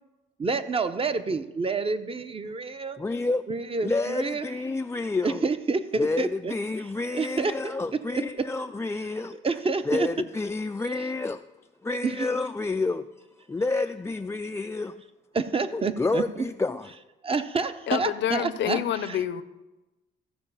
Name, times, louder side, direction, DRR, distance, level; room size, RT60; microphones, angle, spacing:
voice 1, 0.4-3.0 3.5-4.5 5.2-6.5 7.1-8.4 9.4-10.1 12.0-12.3 15.3-16.2 17.2-19.2, right 4 dB, 30° right, 10 dB, 0.7 m, -28 dB
voice 2, 3.0-3.4 3.8-5.4 6.0-9.4 9.9-11.4 11.8-13.0 13.5-15.0 15.7-16.9, left 3 dB, 15° left, 6 dB, 0.3 m, -29 dB
voice 3, 17.9-19.4, left 10 dB, 70° left, 14 dB, 0.6 m, -27 dB
14.5 x 4.9 x 5.5 m, 1.1 s
cardioid pair, 90°, 20 cm